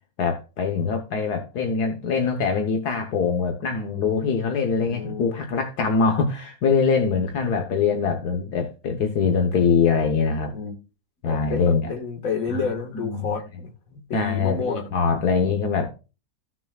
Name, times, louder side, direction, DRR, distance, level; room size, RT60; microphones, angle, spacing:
voice 1, 0.2-10.5 11.2-11.9 12.5-13.3 14.1-15.9, left 5 dB, 80° left, 1.7 m, -23 dB
voice 2, 4.8-5.4 10.5-10.7 11.3-14.8, left 5 dB, 60° left, 2.2 m, -30 dB
15.0 x 6.2 x 2.4 m
omnidirectional pair, 1.7 m